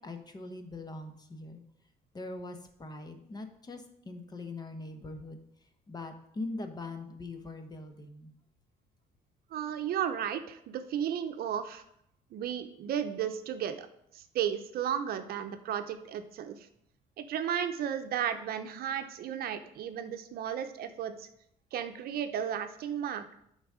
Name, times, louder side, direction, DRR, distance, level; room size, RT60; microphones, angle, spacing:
voice 1, 0.0-1.6 2.1-5.4 5.9-8.3, left 2 dB, 25° left, 6 dB, 1.0 m, -42 dB
voice 2, 9.5-11.8 12.3-13.9 14.1-16.7 17.2-21.3 21.7-23.4, right 9 dB, 65° right, 8 dB, 0.7 m, -34 dB
10.0 x 4.0 x 4.9 m, 0.74 s
cardioid pair, 110°, 17 cm